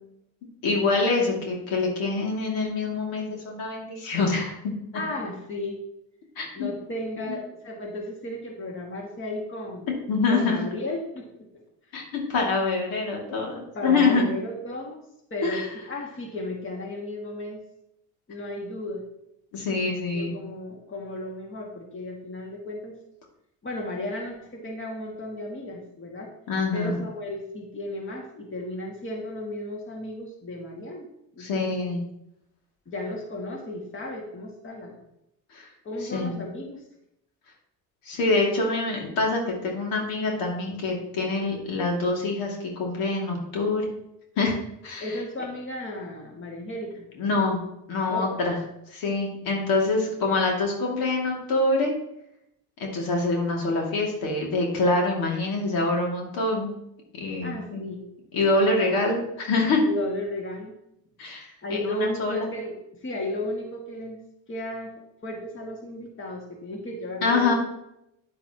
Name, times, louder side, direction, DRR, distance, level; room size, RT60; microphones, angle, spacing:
voice 1, 0.6-4.5 6.4-6.7 7.3-7.4 10.1-10.6 11.9-14.2 15.4-15.6 19.5-20.3 26.5-27.0 31.4-32.0 35.5-35.7 36.1-36.4 38.1-43.8 44.4-44.6 44.8-45.1 47.2-47.6 47.9-48.6 48.9-51.9 52.8-56.7 57.2-57.8 58.3-59.8 61.2-62.5 67.2-67.5, left 3 dB, 80° left, -1 dB, 2.5 m, -25 dB
voice 2, 4.9-5.8 6.5-9.9 10.3-11.6 13.7-15.0 15.3-17.6 18.3-19.0 20.1-22.9 23.6-26.3 26.7-31.1 31.4-32.0 32.9-35.0 35.8-36.8 45.0-47.1 48.1-48.4 57.4-58.0 59.8-60.8 61.6-62.8 63.0-64.2 64.5-64.9 65.2-67.5, left 1 dB, 35° left, 0 dB, 2.1 m, -34 dB
9.5 x 8.5 x 3.0 m, 0.80 s
cardioid pair, 95°, 35 cm